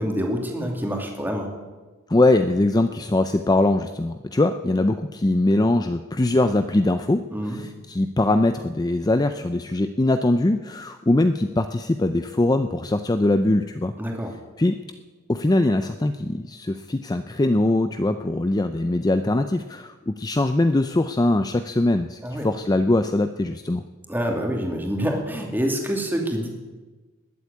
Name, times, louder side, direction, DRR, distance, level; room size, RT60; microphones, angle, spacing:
voice 1, 0.0-1.5 7.3-7.6 14.0-14.3 22.2-22.5 24.1-26.5, equal, 10° right, 1 dB, 2.5 m, -26 dB
voice 2, 2.1-13.9 14.6-14.8 15.3-23.8, left 2 dB, 20° left, 9 dB, 0.5 m, -22 dB
20.5 x 8.1 x 8.6 m, 1.3 s
head